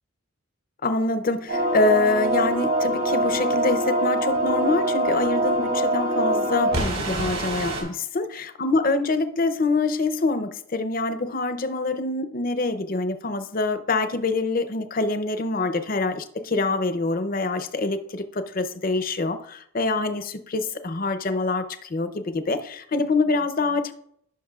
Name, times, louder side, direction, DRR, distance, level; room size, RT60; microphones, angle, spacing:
voice 1, 0.8-23.9, left 3 dB, 40° left, 10 dB, 0.6 m, -25 dB
sound 1, 1.5-7.8, right 1 dB, 80° right, 3.7 m, -24 dB
15.0 x 6.1 x 2.4 m, 0.71 s
head